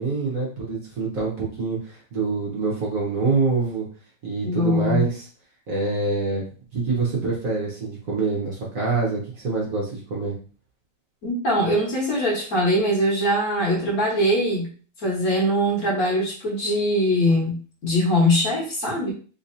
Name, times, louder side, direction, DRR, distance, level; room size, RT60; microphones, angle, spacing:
voice 1, 0.0-3.9 4.2-5.3 5.7-6.4 6.7-10.3, right 4 dB, 55° right, -4 dB, 1.3 m, -25 dB
voice 2, 4.4-5.0 11.2-14.7 15.0-19.1, equal, 55° left, -4 dB, 1.6 m, -22 dB
3.7 x 2.8 x 2.6 m, 0.39 s
omnidirectional pair, 2.0 m